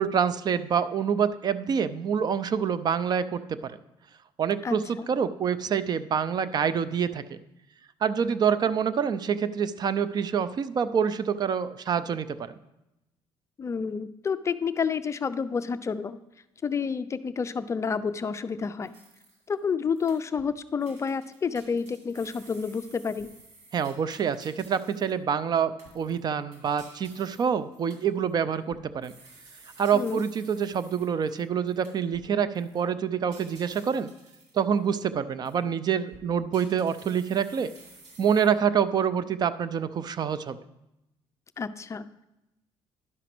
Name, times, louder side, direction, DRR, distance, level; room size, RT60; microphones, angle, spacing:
voice 1, 0.0-3.8 4.4-7.4 8.0-12.5 23.7-29.1 29.8-34.1 34.5-37.7 38.2-40.6, right 7 dB, 45° right, 14 dB, 0.5 m, -26 dB
voice 2, 4.6-5.1 13.6-16.2 16.6-18.9 19.5-23.3 29.9-30.2 41.6-42.2, left 6 dB, 30° left, 12 dB, 0.4 m, -29 dB
sound 1, 18.8-19.6 20.0-20.5 20.8-25.2 25.8-32.3 32.6-32.8 33.3-35.0 35.5-35.6 36.1-38.5, right 3 dB, 90° right, 2.7 m, -53 dB
11.0 x 5.0 x 6.0 m, 0.91 s
cardioid pair, 105°, 10 cm